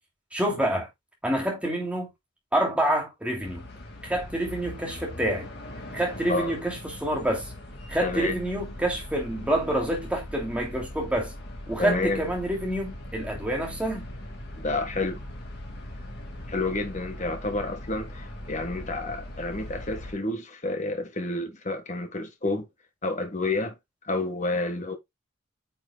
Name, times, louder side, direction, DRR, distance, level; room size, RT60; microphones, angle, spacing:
voice 1, 0.3-0.9 1.2-2.1 2.5-3.7 4.0-5.5 5.9-7.5 7.9-11.3 11.7-14.1, right 1 dB, 5° right, 2.8 m, -27 dB
sound 1, 3.4-20.1, left 1 dB, 50° left, 2.2 m, -40 dB
voice 2, 8.0-8.4 11.8-12.2 14.6-15.2 16.5-22.7 23.0-23.8 24.0-25.0, left 2 dB, 35° left, 1.4 m, -29 dB
9.2 x 6.2 x 2.3 m
head